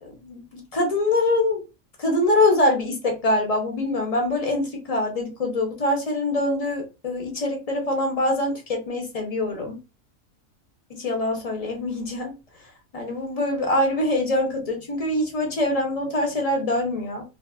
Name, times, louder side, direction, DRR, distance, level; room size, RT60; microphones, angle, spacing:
voice 1, 0.0-1.6 2.0-9.8 10.9-12.3 12.9-17.2, left 2 dB, 40° left, 0.5 m, -24 dB
2.6 x 2.3 x 2.3 m
omnidirectional pair, 1.4 m